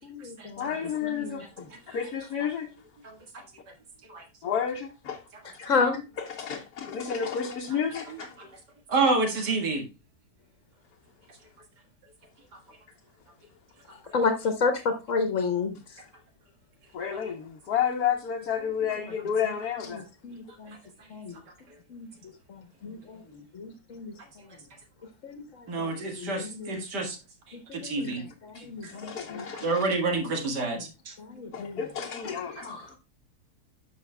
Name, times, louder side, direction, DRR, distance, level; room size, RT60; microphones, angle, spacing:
voice 1, 0.0-0.7 1.1-1.4 5.6-6.0 13.9-16.0 20.2-20.8 21.1-21.4 21.9-22.1 22.5-24.5 25.2-26.8 27.5-28.1 28.4-29.5 30.4-30.8 31.2-31.8 32.2-32.3 32.6-33.0, left 4 dB, 50° left, 1.4 m, -31 dB
voice 2, 0.6-2.7 4.4-5.2 5.6-5.7 6.2-8.4 16.9-20.0 28.5-29.9 31.5-33.0, left 7 dB, 70° left, 1.5 m, -31 dB
voice 3, 3.0-3.4 4.1-4.3 8.4-8.5 8.9-9.8 12.5-12.6 14.0-14.1 20.7-21.1 25.7-27.2 27.5-28.3 28.6-29.1 29.6-31.1 32.6-32.7, right 3 dB, 80° right, 2.3 m, -29 dB
12.0 x 5.7 x 2.2 m
omnidirectional pair, 1.8 m